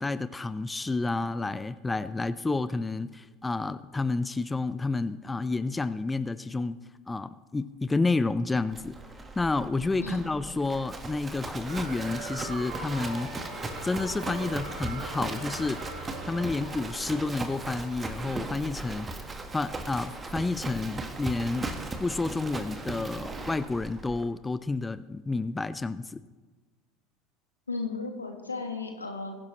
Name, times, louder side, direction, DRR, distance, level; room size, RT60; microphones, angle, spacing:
voice 1, 0.0-6.8 7.1-9.0 9.4-13.3 13.8-15.8 16.3-19.1 19.5-21.7 22.0-26.2, left 3 dB, 15° left, 14 dB, 0.4 m, -30 dB
Livestock farm animals working animals, 8.7-24.2, right 3 dB, 20° right, 1.4 m, -38 dB
voice 2, 10.0-10.3 27.7-29.4, left 3 dB, 85° left, 4 dB, 1.5 m, -35 dB
sound 1, 11.7-18.3, right 2 dB, 65° right, 4.0 m, -41 dB
21.5 x 10.5 x 3.1 m, 1.3 s
figure-of-eight pair, 70°, 0 cm